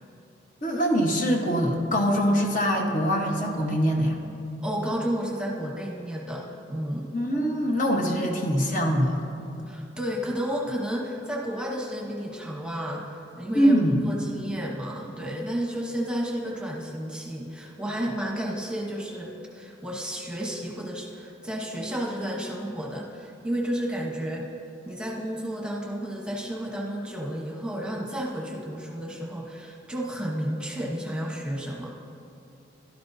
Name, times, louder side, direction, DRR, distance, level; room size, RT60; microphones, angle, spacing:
voice 1, 0.6-4.1 7.1-9.2 13.5-14.0, equal, 50° left, 0 dB, 1.2 m, -23 dB
voice 2, 4.6-7.1 9.7-24.5 24.9-32.0, equal, 5° right, -2 dB, 1.1 m, -32 dB
16.5 x 12.0 x 2.7 m, 2.6 s
head